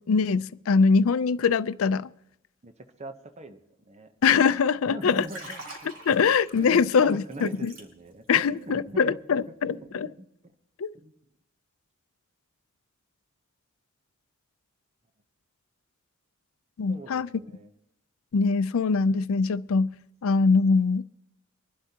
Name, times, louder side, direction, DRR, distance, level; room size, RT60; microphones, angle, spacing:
voice 1, 0.0-2.1 4.2-5.3 6.1-7.7 8.3-10.1 10.8-10.9 16.8-17.3 18.3-19.9 20.2-21.0, left 5 dB, 75° left, 0.4 m, -23 dB
voice 2, 3.0-4.1 4.9-9.2 9.5-10.3 10.9-11.1 16.9-17.7, right 1 dB, 30° right, 0.8 m, -42 dB
Liquid, 5.0-8.3 8.6-8.9, right 2 dB, 65° right, 3.3 m, -45 dB
24.5 x 11.5 x 2.9 m
head